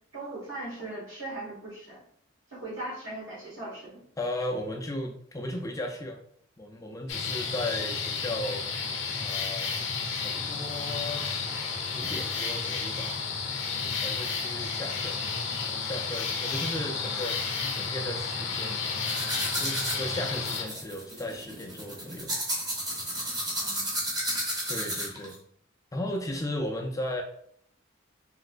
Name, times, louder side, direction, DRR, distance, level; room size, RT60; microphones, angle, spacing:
voice 1, 0.1-2.0 2.5-4.0 23.6-24.1, right 2 dB, 75° right, -4 dB, 1.4 m, -39 dB
voice 2, 4.2-6.2 6.6-8.6 9.2-11.5 11.9-13.2 13.7-15.2 15.6-18.9 19.6-22.3 24.7-25.4 25.9-27.2, left 1 dB, 15° left, 2 dB, 0.3 m, -36 dB
sound 1, 7.1-20.6, left 5 dB, 60° left, 0.6 m, -32 dB
sound 2, 19.1-25.3, right 1 dB, 20° right, 0.7 m, -32 dB
3.1 x 2.8 x 2.4 m, 0.65 s
head